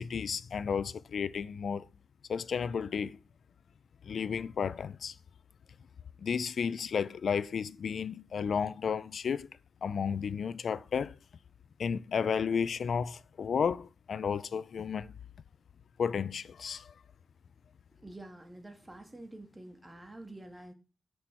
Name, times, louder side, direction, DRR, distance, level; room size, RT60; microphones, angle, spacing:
voice 1, 0.0-1.9 2.3-3.2 4.0-5.2 6.2-9.5 9.8-11.2 11.8-15.1 16.0-16.9, left 6 dB, 70° left, 0.4 m, -32 dB
voice 2, 18.0-20.7, right 1 dB, 20° right, 1.8 m, -48 dB
8.4 x 6.2 x 4.4 m
cardioid pair, 80°, 0 cm